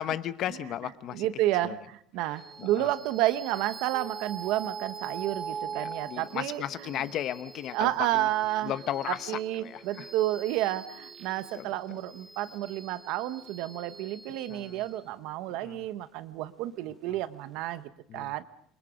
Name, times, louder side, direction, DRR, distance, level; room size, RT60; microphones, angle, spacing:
voice 1, 0.0-1.3 1.6-1.8 2.6-2.9 5.8-8.3 8.6-10.1 11.5-12.0 14.5-14.8 15.6-15.8 18.1-18.3, left 11 dB, 35° left, 14 dB, 0.8 m, -35 dB
voice 2, 1.1-6.6 7.7-8.7 9.1-18.4, right 14 dB, 55° right, 13 dB, 1.0 m, -30 dB
sound 1, 2.4-17.1, right 6 dB, 15° right, 1.9 m, -44 dB
27.5 x 23.0 x 5.1 m, 0.67 s
cardioid pair, 180°, 0 cm